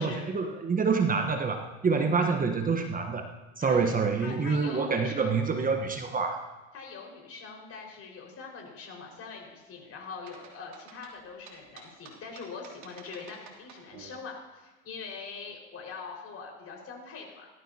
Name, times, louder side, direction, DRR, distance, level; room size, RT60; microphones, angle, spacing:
voice 1, 0.0-3.3 3.6-6.4, right 5 dB, 25° right, 5 dB, 1.1 m, -27 dB
voice 2, 3.6-3.9 4.2-5.4 6.7-17.5, left 5 dB, 40° left, -1 dB, 5.1 m, -43 dB
sound 1, 10.3-14.1, right 5 dB, 50° right, 3.1 m, -51 dB
18.5 x 13.0 x 2.9 m, 1.2 s
hypercardioid pair, 90°, 36 cm